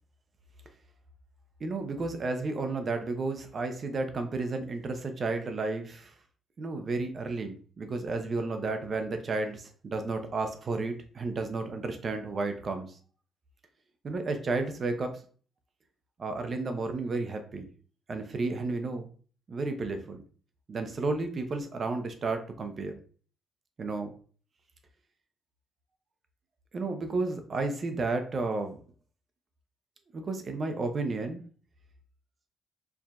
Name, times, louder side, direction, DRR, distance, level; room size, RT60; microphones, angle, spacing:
voice 1, 1.6-6.1 6.6-13.0 14.0-15.2 16.2-17.7 18.1-19.1 19.5-20.2 20.7-22.9 23.8-24.1 26.7-28.8 30.1-31.4, right 3 dB, 45° right, 6 dB, 0.7 m, -32 dB
4.7 x 2.6 x 2.3 m, 0.42 s
cardioid pair, 90°, 0 cm